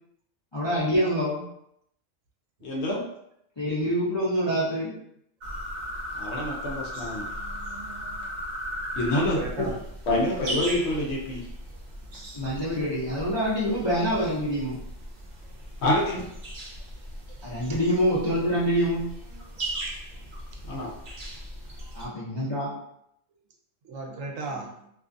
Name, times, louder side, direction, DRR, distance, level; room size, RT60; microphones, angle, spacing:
voice 1, 0.5-1.4 3.6-4.9 12.3-14.8 17.4-19.0 21.9-22.7, equal, 40° left, -9 dB, 0.4 m, -26 dB
voice 2, 2.6-3.0 6.1-7.3 8.9-9.7 10.1-11.5 15.8-16.3 20.7-20.9, left 1 dB, 65° left, -2 dB, 0.8 m, -27 dB
sound 1, 5.4-22.1, equal, 55° right, 0.5 m, -37 dB
voice 3, 9.1-9.8 12.1-12.3 13.7-13.8 15.9-16.0 17.7-17.8 19.9-20.2 21.8-21.9 23.8-24.9, right 3 dB, 75° right, 1 dB, 0.9 m, -37 dB
2.5 x 2.3 x 2.5 m, 0.76 s
omnidirectional pair, 1.3 m